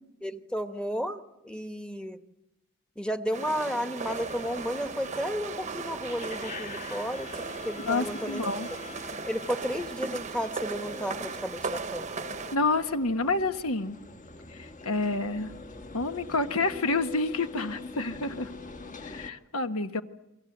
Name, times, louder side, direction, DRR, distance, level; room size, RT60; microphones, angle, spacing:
voice 1, 0.2-2.2 3.0-8.4 9.3-12.1, equal, 5° left, 8 dB, 1.2 m, -33 dB
sound 1, 3.3-12.6, right 4 dB, 30° right, 0.9 m, -37 dB
sound 2, 4.0-19.3, left 3 dB, 35° left, 1.5 m, -44 dB
voice 2, 7.8-8.7 12.5-14.0 14.5-15.5 15.9-18.5 19.0-20.0, left 3 dB, 70° left, 8 dB, 1.4 m, -28 dB
29.5 x 23.5 x 8.0 m, 0.92 s
head